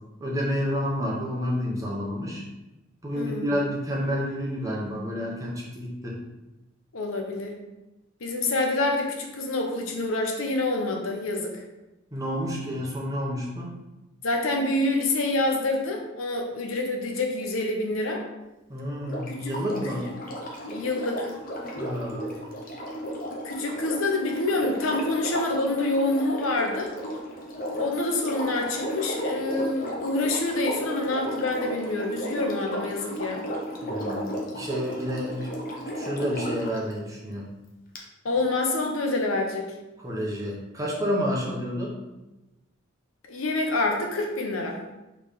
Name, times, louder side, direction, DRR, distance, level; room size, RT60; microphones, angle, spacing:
voice 1, 0.2-2.5 3.0-6.2 12.1-13.7 18.7-20.1 21.8-22.2 33.8-35.5 35.9-37.5 40.0-42.0, equal, 15° right, -4 dB, 0.9 m, -29 dB
voice 2, 3.1-3.6 6.9-7.5 8.2-11.6 14.2-18.2 19.3-19.5 20.7-21.3 23.4-26.9 27.8-33.4 38.2-39.7 43.3-44.8, left 2 dB, 90° left, 2 dB, 0.8 m, -27 dB
Sink (filling or washing), 19.0-36.8 37.9-38.0, equal, 45° left, 0.7 m, -34 dB
4.1 x 3.3 x 3.5 m, 1.0 s
head